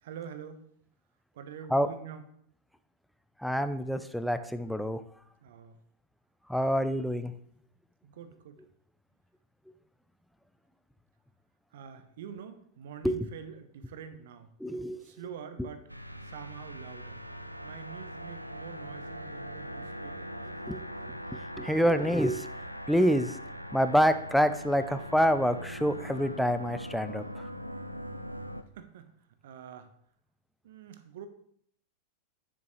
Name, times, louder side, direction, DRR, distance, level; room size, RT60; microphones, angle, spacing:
voice 1, 0.0-0.6 1.3-2.2 5.4-5.8 8.0-8.6 11.7-14.5 15.0-15.9 16.2-17.2 17.6-20.3 28.7-29.1 29.4-29.9 30.6-31.3, right 8 dB, 55° right, 10 dB, 1.0 m, -45 dB
voice 2, 3.4-5.0 6.5-7.3 13.0-13.2 14.6-15.0 20.7-20.8 21.3-22.5 22.9-23.4 23.7-27.2, equal, ahead, 10 dB, 0.6 m, -26 dB
sound 1, 15.9-28.6, equal, 90° right, 0.5 m, -41 dB
9.4 x 7.5 x 3.1 m, 0.65 s
figure-of-eight pair, 90°, 0 cm